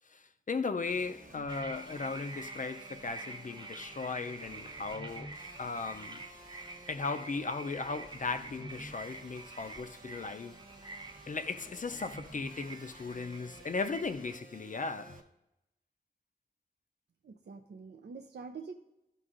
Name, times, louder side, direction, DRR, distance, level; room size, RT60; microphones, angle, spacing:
voice 1, 0.1-5.3 5.6-6.2 6.9-10.6 11.3-15.2, left 4 dB, 45° left, 0.4 m, -37 dB
sound 1, 0.9-15.2, right 2 dB, 50° right, 1.0 m, -52 dB
sound 2, 1.5-14.4, right 3 dB, 25° right, 0.7 m, -48 dB
voice 2, 17.2-18.7, right 5 dB, 75° right, 0.4 m, -45 dB
12.5 x 5.3 x 2.5 m
wide cardioid pair, 75°, 18 cm